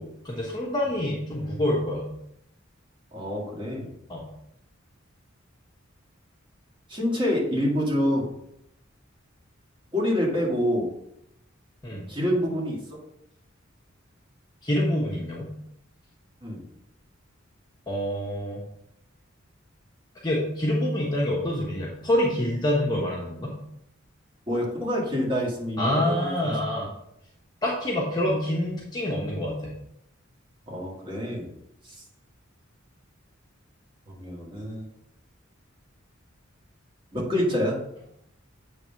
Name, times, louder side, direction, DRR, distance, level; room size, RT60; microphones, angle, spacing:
voice 1, 0.0-2.1 4.1-4.2 11.8-12.0 14.6-15.5 17.9-18.6 20.2-23.5 25.8-26.9 27.6-29.7, left 1 dB, 20° left, -4 dB, 1.1 m, -26 dB
voice 2, 3.1-3.9 6.9-8.3 9.9-10.9 12.1-12.8 16.4-16.6 24.5-26.6 30.7-31.5 31.8-31.9 34.1-34.9 37.1-37.8, equal, 25° right, -3 dB, 2.1 m, -27 dB
7.8 x 3.5 x 5.7 m, 0.76 s
head